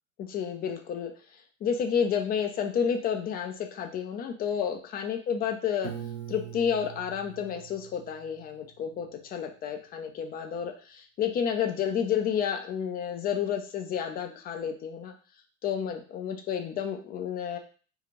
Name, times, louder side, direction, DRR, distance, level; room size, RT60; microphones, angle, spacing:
voice 1, 0.2-1.1 1.6-5.9 6.3-15.1 15.6-17.6, left 8 dB, 25° left, 5 dB, 0.4 m, -30 dB
Piano, 5.8-8.8, right 9 dB, 80° right, 0.9 m, -42 dB
2.7 x 2.4 x 3.0 m, 0.40 s
figure-of-eight pair, 75°, 40 cm